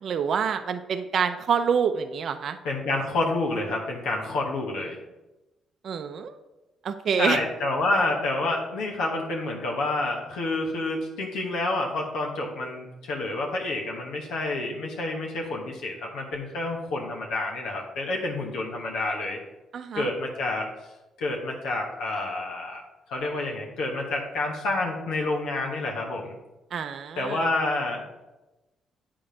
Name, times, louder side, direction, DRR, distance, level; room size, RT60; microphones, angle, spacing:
voice 1, 0.0-2.6 5.8-6.4 6.8-7.4 19.7-20.1 26.7-27.4, right 7 dB, 60° right, 8 dB, 0.5 m, -27 dB
voice 2, 2.6-5.0 7.2-19.4 19.9-20.7 21.2-22.8 23.1-26.4 27.1-28.0, left 2 dB, 90° left, -1 dB, 1.3 m, -28 dB
8.7 x 3.8 x 4.9 m, 1.0 s
cardioid pair, 90°, 0 cm